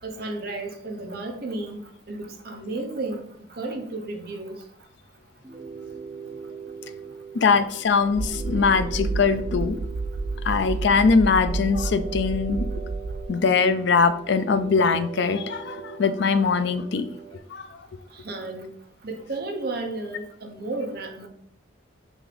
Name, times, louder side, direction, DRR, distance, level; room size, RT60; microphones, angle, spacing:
voice 1, 0.0-1.8 2.1-4.6 18.1-18.7 19.0-21.3, right 2 dB, 50° right, 3 dB, 0.8 m, -33 dB
sound 1, 5.4-17.4, right 6 dB, 20° right, 0.5 m, -40 dB
voice 2, 7.3-9.8 10.4-12.7 13.3-17.1 17.5-17.8, left 5 dB, 60° left, 11 dB, 0.4 m, -22 dB
sound 2, 8.2-13.3, right 3 dB, 80° right, 0.5 m, -30 dB
6.0 x 2.6 x 3.3 m, 0.68 s
head